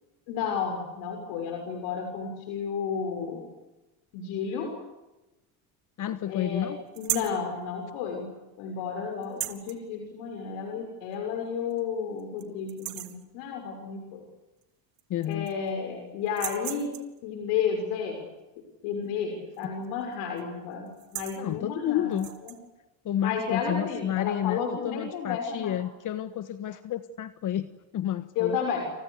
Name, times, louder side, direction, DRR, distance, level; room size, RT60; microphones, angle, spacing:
voice 1, 0.3-3.5 4.1-4.7 6.3-6.7 7.0-8.3 8.6-14.2 15.2-16.9 17.2-18.3 18.8-22.5 23.2-25.8 28.3-28.8, left 6 dB, 90° left, 3 dB, 6.8 m, -32 dB
voice 2, 6.0-6.8 15.1-15.5 21.4-22.3 23.0-28.6, left 11 dB, 50° left, 12 dB, 1.5 m, -30 dB
sound 1, 6.9-7.4 9.2-9.8 11.1-11.2 11.7-11.8 12.2-12.4 12.7-13.2 14.6-14.7 15.0-15.7 16.3-17.2 19.5-19.8 20.1-20.4 20.9-21.4 22.1-22.6, right 14 dB, 60° right, 2.6 m, -36 dB
29.5 x 29.0 x 6.7 m, 1.0 s
cardioid pair, 120°, 39 cm